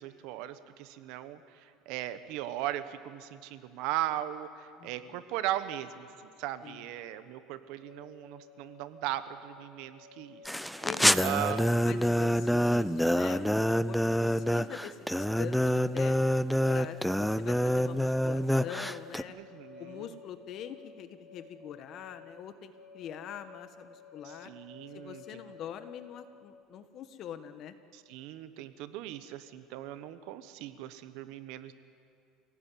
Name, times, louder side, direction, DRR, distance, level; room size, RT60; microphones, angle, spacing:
voice 1, 0.0-6.1 6.4-10.4 10.7-10.8 11.2-11.7 19.3-20.1 24.2-25.2 27.9-31.7, right 13 dB, 70° right, 11 dB, 1.3 m, -38 dB
voice 2, 4.8-5.2 6.6-6.9 10.8-11.6 11.8-16.2 16.7-19.3 19.8-24.5 24.9-27.7, left 9 dB, 50° left, 10 dB, 1.5 m, -44 dB
sound 1, 7.8-26.5, left 5 dB, 25° left, 4.1 m, -53 dB
sound 2, 10.5-19.2, equal, ahead, 0.5 m, -27 dB
27.0 x 17.5 x 9.3 m, 2.4 s
cardioid pair, 130°, 0 cm